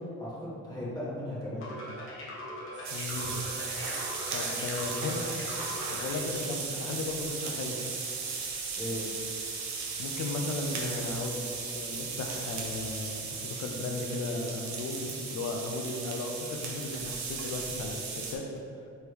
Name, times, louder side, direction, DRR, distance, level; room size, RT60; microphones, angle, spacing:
voice 1, 0.2-1.7 8.8-9.3, left 1 dB, 15° left, -9 dB, 1.3 m, -36 dB
sound 1, 1.6-6.2, left 1 dB, 45° left, 1.2 m, -40 dB
sound 2, 2.7-11.1, right 7 dB, 40° right, 0.4 m, -49 dB
sound 3, 2.8-18.4, right 4 dB, 65° right, 0.8 m, -36 dB
voice 2, 2.9-3.4 4.3-5.2 5.9-7.8 10.0-18.4, left 2 dB, 70° left, 2 dB, 0.7 m, -35 dB
3.4 x 3.3 x 4.6 m, 2.5 s
cardioid pair, 90°, 30 cm